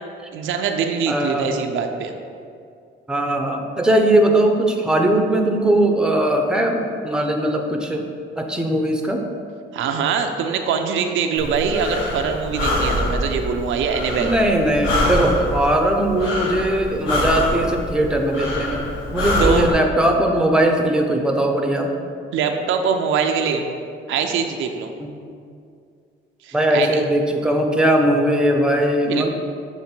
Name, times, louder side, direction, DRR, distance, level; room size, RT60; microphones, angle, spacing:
voice 1, 0.3-2.1 9.7-14.3 19.4-19.7 22.3-23.6 24.1-24.9 26.4-27.0 29.1-29.3, right 6 dB, 80° right, 5 dB, 0.5 m, -23 dB
voice 2, 1.1-1.6 3.1-8.0 8.4-9.2 14.2-18.8 19.1-21.9 25.0-25.1 26.5-29.3, right 1 dB, 5° right, 3 dB, 0.6 m, -19 dB
Breathing, 11.4-19.7, left 1 dB, 85° left, 1.1 m, -24 dB
7.1 x 3.1 x 4.4 m, 2.3 s
cardioid pair, 90°, 20 cm